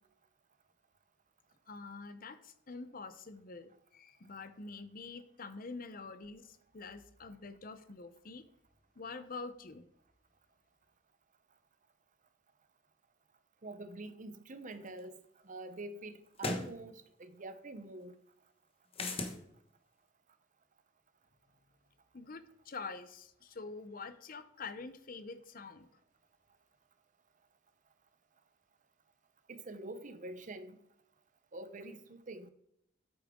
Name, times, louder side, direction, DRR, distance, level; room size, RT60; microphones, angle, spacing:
voice 1, 1.7-8.4 9.0-9.9 22.1-25.9, left 4 dB, 45° left, 0.8 m, -46 dB
voice 2, 13.6-15.1 15.4-18.1 29.5-30.8 31.5-32.5, right 2 dB, 40° right, 0.8 m, -46 dB
sound 1, 15.0-15.1 16.4-16.7 18.9-19.4, left 2 dB, 30° left, 1.2 m, -35 dB
8.9 x 8.7 x 3.7 m
head